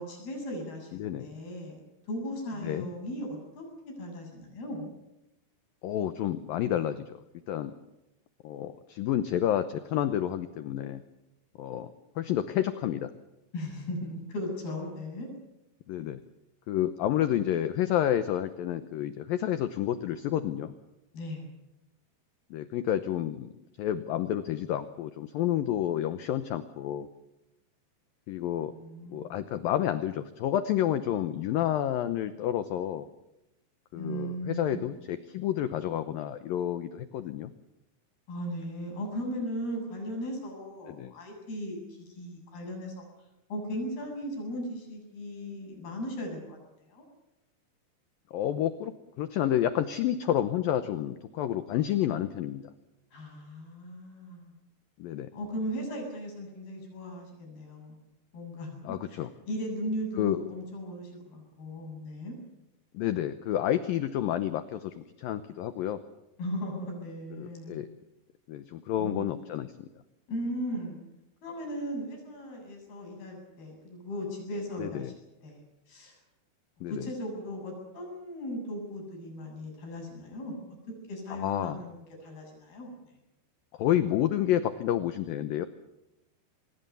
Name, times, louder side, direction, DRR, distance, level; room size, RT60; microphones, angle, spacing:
voice 1, 0.0-1.8 2.1-4.9 13.5-15.3 21.1-21.5 28.6-29.3 33.9-35.0 38.3-43.1 43.5-46.6 46.9-47.1 53.1-54.5 55.3-58.0 58.3-58.8 59.1-62.4 66.4-67.8 69.0-69.2 70.3-71.0 71.4-75.1 75.4-75.6 75.9-76.1 76.9-80.5 81.1-82.9, equal, 55° left, 1 dB, 9.4 m, -37 dB
voice 2, 0.9-1.3 2.6-2.9 5.8-7.1 7.5-7.7 8.4-11.0 11.6-13.1 15.9-16.2 16.7-20.7 22.5-23.5 23.8-27.1 28.3-28.7 29.1-33.1 33.9-37.5 40.9-41.1 48.3-48.9 49.2-52.6 55.0-55.3 58.8-59.3 60.2-60.4 62.9-66.0 67.3-67.9 68.5-69.9 74.8-75.1 76.8-77.1 81.3-81.8 83.8-85.7, left 11 dB, 75° left, 11 dB, 2.1 m, -30 dB
25.5 x 21.5 x 7.0 m, 0.92 s
omnidirectional pair, 5.2 m